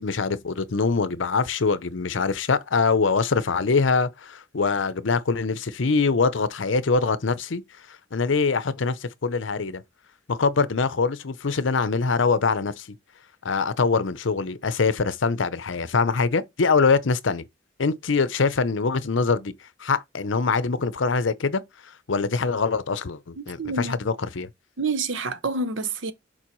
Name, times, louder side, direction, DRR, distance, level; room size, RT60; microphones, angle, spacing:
voice 1, 0.0-7.6 7.9-9.8 10.3-12.9 13.4-17.4 17.8-19.5 19.8-21.6 22.1-24.5, left 4 dB, 75° left, 0.7 m, -23 dB
voice 2, 23.4-24.0 24.8-26.1, right 3 dB, 75° right, 0.8 m, -28 dB
7.3 x 4.5 x 3.1 m
head